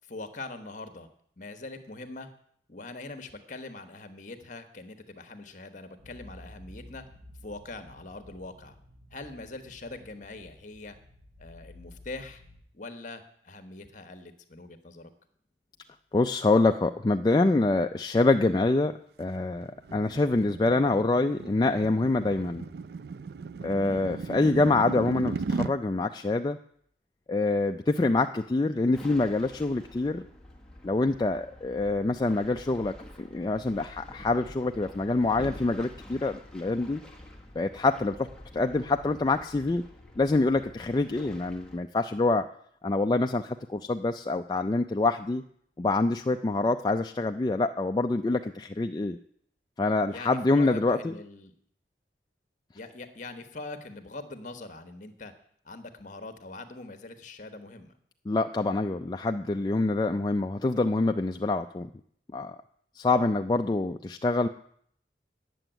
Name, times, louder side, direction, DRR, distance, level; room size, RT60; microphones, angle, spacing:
voice 1, 0.1-1.1 1.4-2.3 2.7-7.0 7.4-8.8 9.1-11.0 11.4-12.4 12.7-15.1 23.6-24.0 50.1-51.5 52.7-55.3 55.6-57.9, left 2 dB, 45° left, 9 dB, 1.2 m, -42 dB
sound 1, 6.0-12.6, left 1 dB, 75° right, 3.8 m, -52 dB
voice 2, 16.1-18.9 19.2-22.7 23.6-26.6 27.3-30.2 30.8-37.0 37.6-38.3 38.5-39.8 40.2-42.5 42.8-45.4 45.8-49.2 49.8-51.1 58.3-61.9 62.3-62.6 63.0-64.5, left 2 dB, 25° left, 5 dB, 0.3 m, -26 dB
sound 2, 19.3-25.7, right 4 dB, 60° right, 0.3 m, -36 dB
sound 3, 28.9-41.8, left 1 dB, 5° left, 1.2 m, -48 dB
9.3 x 7.0 x 9.0 m, 0.65 s
head